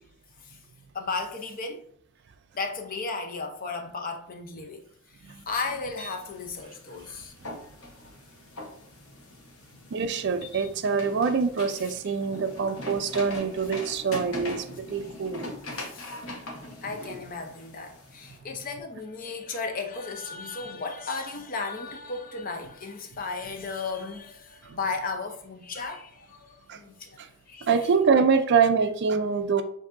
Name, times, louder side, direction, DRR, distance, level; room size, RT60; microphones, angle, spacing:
voice 1, 0.9-1.8 2.5-7.3 11.7-11.9 12.5-12.6 14.2-14.3 15.7-16.2 16.8-27.2 27.5-27.7, left 4 dB, 40° left, 0.6 m, -35 dB
sound 1, 5.9-18.4, left 1 dB, 65° left, 1.0 m, -42 dB
voice 2, 9.9-15.5 24.7-24.8 26.7-26.8 27.2-27.3 27.6-29.6, right 5 dB, 50° right, 0.4 m, -25 dB
6.9 x 2.7 x 2.5 m
head